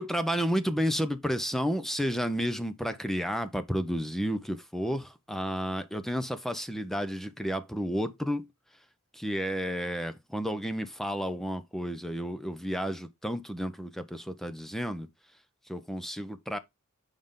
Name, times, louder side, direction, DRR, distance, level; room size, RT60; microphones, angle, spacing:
voice 1, 0.0-8.5 9.1-15.1 15.7-16.6, equal, ahead, 0.7 m, -31 dB
7.6 x 5.2 x 3.7 m
head